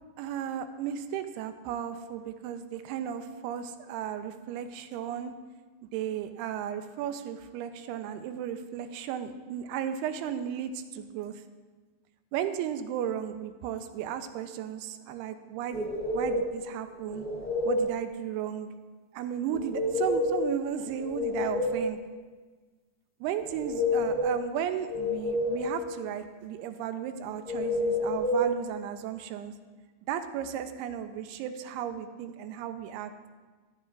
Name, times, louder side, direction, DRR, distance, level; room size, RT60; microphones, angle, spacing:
voice 1, 0.2-5.3 5.9-11.4 12.3-15.9 16.1-17.3 17.6-18.7 19.1-22.0 23.2-29.5 30.1-33.1, right 9 dB, 90° right, 9 dB, 2.6 m, -35 dB
sound 1, 15.7-16.6 17.1-17.9 19.5-20.5 20.9-22.0 23.4-24.4 24.9-25.9 27.4-28.5, left 1 dB, 5° left, 1.6 m, -29 dB
15.0 x 11.5 x 2.4 m, 1.4 s
omnidirectional pair, 4.6 m